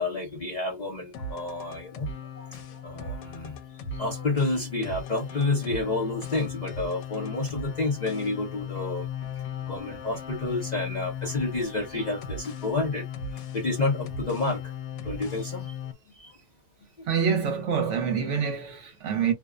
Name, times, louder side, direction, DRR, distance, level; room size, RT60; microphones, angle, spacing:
voice 1, 0.0-2.1 2.3-3.6 3.9-9.1 9.6-14.7 15.0-15.8 16.1-16.3 17.0-17.1, left 2 dB, 40° left, 0.7 m, -30 dB
sound 1, 1.1-15.9, left 6 dB, 90° left, 1.1 m, -37 dB
voice 2, 17.1-19.3, right 7 dB, 60° right, 1.0 m, -26 dB
2.6 x 2.1 x 2.4 m
omnidirectional pair, 1.5 m